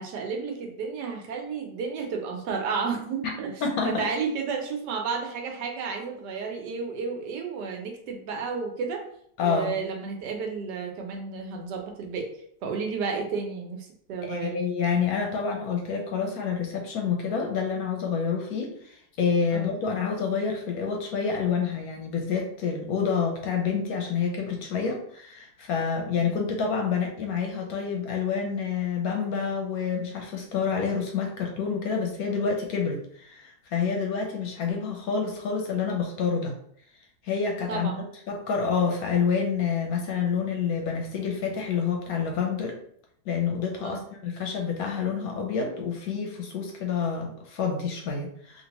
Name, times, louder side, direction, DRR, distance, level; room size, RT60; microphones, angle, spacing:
voice 1, 0.0-3.5 3.8-9.0 9.4-12.3 12.6-14.6 19.5-19.7 37.7-38.0 43.8-44.0, right 5 dB, 80° right, 3 dB, 1.2 m, -32 dB
voice 2, 3.6-4.0 9.4-9.7 14.2-36.5 37.2-37.9 38.3-42.7 43.3-48.6, left 6 dB, 70° left, 2 dB, 1.0 m, -28 dB
3.0 x 2.6 x 2.9 m, 0.65 s
omnidirectional pair, 1.8 m